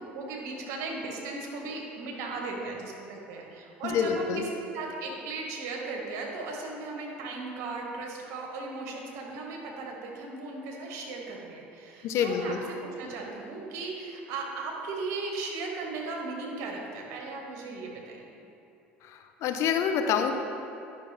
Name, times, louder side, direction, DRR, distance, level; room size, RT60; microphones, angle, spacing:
voice 1, 0.1-4.4 4.7-18.2, right 3 dB, 60° right, 0 dB, 1.5 m, -37 dB
voice 2, 3.8-4.5 12.0-12.6 19.0-20.3, left 7 dB, 55° left, 6 dB, 0.7 m, -27 dB
10.5 x 5.9 x 3.3 m, 2.8 s
hypercardioid pair, 70°, 6 cm